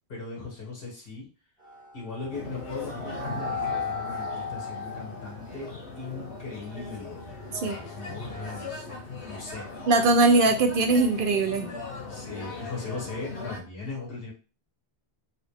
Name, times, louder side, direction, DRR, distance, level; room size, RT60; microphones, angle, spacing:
voice 1, 0.1-1.3 1.9-8.9 9.3-9.7 12.1-14.3, left 3 dB, 60° left, -3 dB, 1.8 m, -39 dB
sound 1, 1.6-8.7, left 3 dB, 5° right, 1.2 m, -37 dB
sound 2, 2.3-13.6, left 3 dB, 80° left, 1.3 m, -39 dB
voice 2, 9.9-11.7, right 3 dB, 60° right, 5 dB, 0.7 m, -21 dB
4.1 x 2.4 x 3.4 m, 0.34 s
omnidirectional pair, 1.1 m